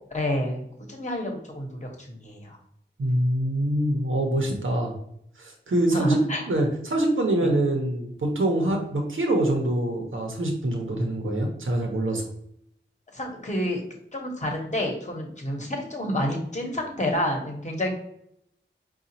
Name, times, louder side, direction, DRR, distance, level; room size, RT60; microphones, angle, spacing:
voice 1, 0.0-2.6 5.9-6.5 7.4-7.5 13.1-13.8 14.1-17.9, left 1 dB, 35° left, 1 dB, 1.0 m, -29 dB
voice 2, 3.0-4.9 5.4-6.2 6.5-12.2, right 1 dB, 85° right, 2 dB, 0.8 m, -25 dB
4.9 x 2.4 x 2.8 m, 0.71 s
wide cardioid pair, 60°, 20 cm